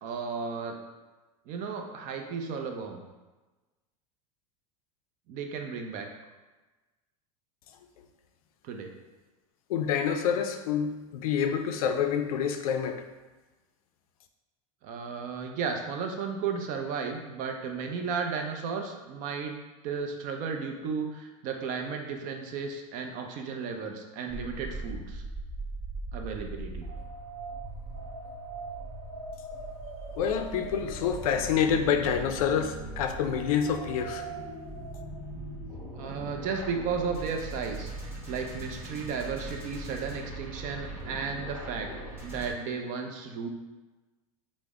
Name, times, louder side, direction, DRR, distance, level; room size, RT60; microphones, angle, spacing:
voice 1, 0.0-0.8 1.5-3.0 5.3-6.1 8.6-8.9 14.8-19.6 19.8-25.2 26.1-26.9 35.9-37.9 38.3-41.9 42.2-43.5, right 5 dB, 50° right, 4 dB, 0.5 m, -34 dB
voice 2, 9.7-13.0 30.2-34.3, left 7 dB, 85° left, 6 dB, 0.4 m, -27 dB
sound 1, 24.3-42.5, right 2 dB, 15° right, 1.3 m, -40 dB
3.3 x 2.0 x 3.5 m, 1.2 s
supercardioid pair, 120°, 18 cm